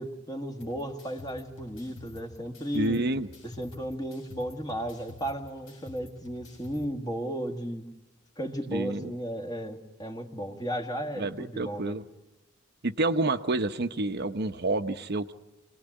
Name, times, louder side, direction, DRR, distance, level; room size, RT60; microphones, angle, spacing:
voice 1, 0.0-3.0 3.4-7.8 8.4-11.9, equal, 20° left, 4 dB, 2.0 m, -34 dB
sound 1, 0.6-6.8, left 3 dB, 80° left, 6.1 m, -49 dB
voice 2, 2.7-3.3 8.7-9.1 11.2-12.0 12.8-15.3, right 2 dB, 55° right, 8 dB, 0.9 m, -28 dB
25.5 x 19.0 x 9.9 m, 1.0 s
head